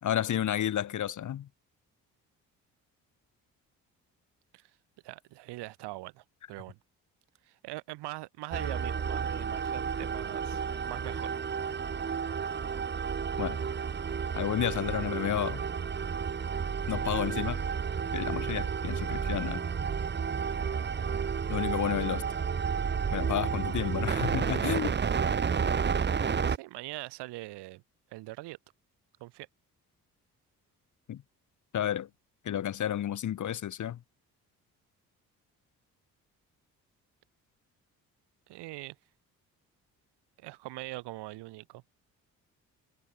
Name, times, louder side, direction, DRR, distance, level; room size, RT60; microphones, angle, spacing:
voice 1, 0.0-1.5 13.4-13.6 14.3-15.6 16.9-17.6 18.1-19.6 21.5-22.2 23.1-25.0 31.1-31.2 31.7-32.1 32.4-34.0, left 10 dB, 40° left, 0.9 m, -31 dB
voice 2, 5.0-6.8 7.5-11.3 26.5-27.8 28.1-28.6 29.2-29.5 38.5-39.0 40.4-41.8, right 19 dB, 65° right, 1.1 m, -42 dB
sound 1, 8.5-26.6, right 6 dB, 25° right, 0.8 m, -31 dB
hypercardioid pair, 45°, 44 cm